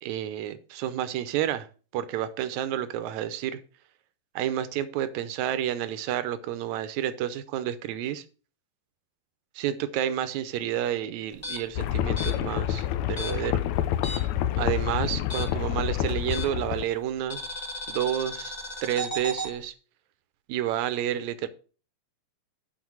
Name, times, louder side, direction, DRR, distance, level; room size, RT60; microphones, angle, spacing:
voice 1, 0.0-1.7 1.9-3.6 4.4-8.2 9.6-13.6 14.6-17.4 17.9-18.5 18.8-19.7 20.5-21.5, right 11 dB, 75° right, 1.9 m, -30 dB
sound 1, 11.3-14.4 14.7-16.8 17.3-19.5, equal, 20° left, 1.0 m, -36 dB
sound 2, 11.8-16.8, left 12 dB, 75° left, 1.8 m, -28 dB
9.2 x 4.5 x 6.1 m
omnidirectional pair, 3.6 m